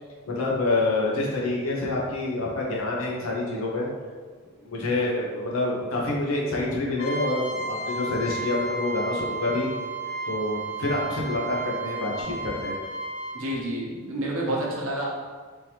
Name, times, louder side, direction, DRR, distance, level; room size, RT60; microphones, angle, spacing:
voice 1, 0.3-3.9 4.6-9.7 10.3-12.8, left 2 dB, 65° left, -3 dB, 0.8 m, -27 dB
Trumpet, 7.0-13.4, right 2 dB, 30° left, 0.5 m, -33 dB
voice 2, 13.3-15.0, right 1 dB, 70° right, -4 dB, 0.9 m, -29 dB
3.6 x 2.8 x 3.1 m, 1.5 s
head